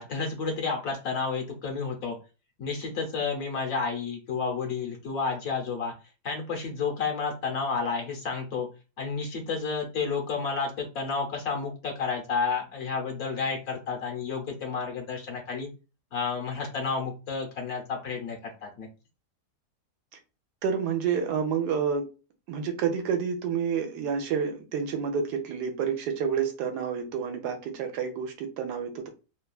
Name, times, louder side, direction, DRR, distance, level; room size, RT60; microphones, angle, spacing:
voice 1, 0.0-2.2 2.6-5.9 6.2-8.7 9.0-15.7 16.1-18.9, left 5 dB, 70° left, 1 dB, 1.2 m, -31 dB
voice 2, 20.6-22.0 22.5-29.1, right 6 dB, 90° right, 5 dB, 1.2 m, -29 dB
3.2 x 2.2 x 2.3 m, 0.32 s
omnidirectional pair, 1.7 m